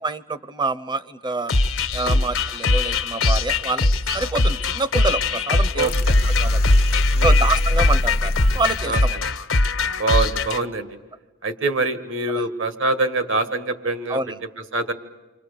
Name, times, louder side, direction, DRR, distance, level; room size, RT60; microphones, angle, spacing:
voice 1, 0.0-1.5 1.9-6.0 6.2-6.8 7.2-9.2 12.3-12.4 14.1-14.4, right 3 dB, 20° right, 15 dB, 0.8 m, -27 dB
sound 1, 1.5-10.6, left 3 dB, 75° left, 1.2 m, -22 dB
sound 2, 5.8-8.8, left 1 dB, 50° left, 0.8 m, -21 dB
voice 2, 8.9-9.3 10.0-10.9 11.4-14.2 14.7-14.9, right 3 dB, 65° right, 8 dB, 2.0 m, -24 dB
29.5 x 24.5 x 6.9 m, 1.2 s
head